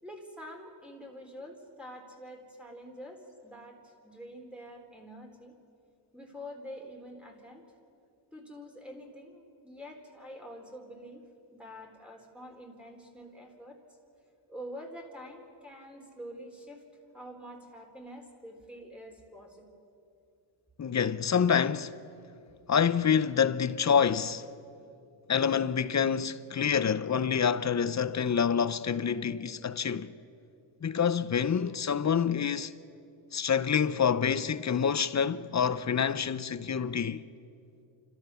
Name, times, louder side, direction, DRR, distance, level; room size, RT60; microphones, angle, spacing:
voice 1, 0.0-5.5 6.1-7.6 8.3-11.2 11.5-13.8 14.5-16.8 17.1-19.7, equal, ahead, 4.2 m, -46 dB
voice 2, 20.8-21.9 22.7-24.5 25.3-30.1 30.8-32.7 33.3-37.2, left 7 dB, 35° left, 0.8 m, -27 dB
29.5 x 13.5 x 7.1 m
cardioid pair, 75°, 48 cm